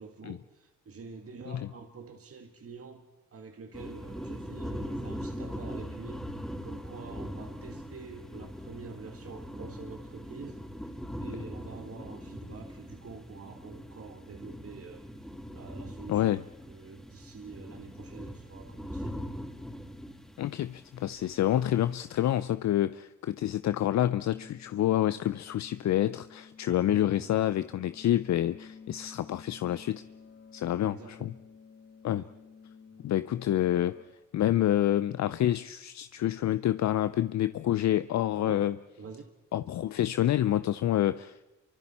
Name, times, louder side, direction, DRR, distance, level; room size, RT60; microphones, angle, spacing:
voice 1, 0.0-3.1 3.3-16.4 16.7-19.4 26.7-27.4 30.7-31.4 32.1-32.3 38.4-38.7 39.0-39.3, right 5 dB, 50° right, 5 dB, 1.9 m, -47 dB
sound 1, 3.7-22.4, equal, ahead, 4.0 m, -41 dB
voice 2, 16.1-16.4 20.4-30.0 30.5-31.3 32.0-32.3 33.0-34.0 34.3-38.8 39.5-41.4, left 12 dB, 65° left, 13 dB, 0.6 m, -28 dB
sound 2, 24.0-34.0, left 6 dB, 85° left, 5.5 m, -52 dB
27.5 x 24.5 x 4.3 m, 1.0 s
supercardioid pair, 65°, 30 cm